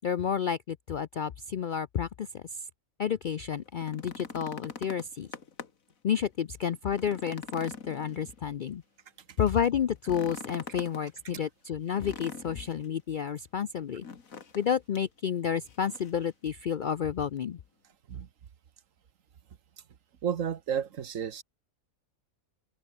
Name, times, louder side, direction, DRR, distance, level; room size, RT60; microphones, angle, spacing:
voice 1, 0.0-2.6 3.0-5.3 6.0-8.8 9.4-14.1 14.5-17.6, left 8 dB, 60° left, 0.5 m, -30 dB
sound 1, 3.7-5.9 6.3-6.4 6.8-8.7 10.0-11.0 11.9-12.9 14.0-14.7 14.9-15.1 15.7-16.2 17.4-17.5, left 6 dB, 80° left, 2.2 m, -43 dB
voice 2, 20.2-21.4, right 8 dB, 70° right, 1.5 m, -32 dB
open air
omnidirectional pair, 1.4 m